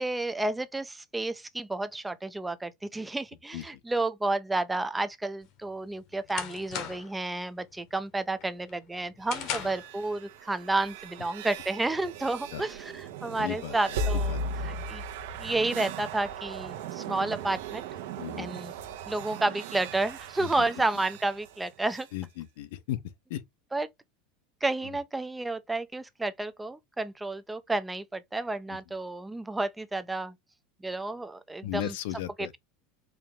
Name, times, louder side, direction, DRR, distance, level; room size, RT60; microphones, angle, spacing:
voice 1, 0.0-14.4 14.7-15.0 15.4-17.8 18.4-18.7 19.1-22.1 23.7-23.9 24.6-30.3 30.8-31.9 32.4-32.6, right 2 dB, 5° right, 0.4 m, -31 dB
sound 1, 5.5-7.2 7.6-8.0 8.4-9.9, left 9 dB, 45° left, 0.9 m, -37 dB
sound 2, 9.3-22.1, right 2 dB, 70° right, 0.9 m, -37 dB
voice 2, 13.4-14.0 14.3-14.4 18.2-18.5 20.4-20.6 22.1-23.0 23.3-23.4 24.8-25.0 28.7-28.8 31.6-32.5, left 14 dB, 70° left, 0.6 m, -36 dB
4.6 x 2.4 x 3.5 m
supercardioid pair, 165°, 0 cm